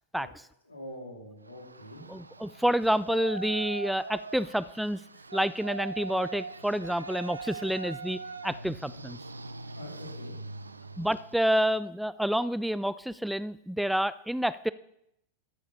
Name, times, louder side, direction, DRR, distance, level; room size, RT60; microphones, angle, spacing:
voice 1, 0.1-0.5 2.1-5.0 5.3-9.2 11.0-14.7, equal, ahead, 17 dB, 0.3 m, -29 dB
voice 2, 0.7-2.1 8.9-9.0 9.7-10.4, equal, 85° left, 0 dB, 2.7 m, -44 dB
Yell, 1.5-11.7, right 3 dB, 80° right, 0.5 m, -41 dB
13.0 x 7.0 x 5.6 m, 0.77 s
figure-of-eight pair, 90°, 0 cm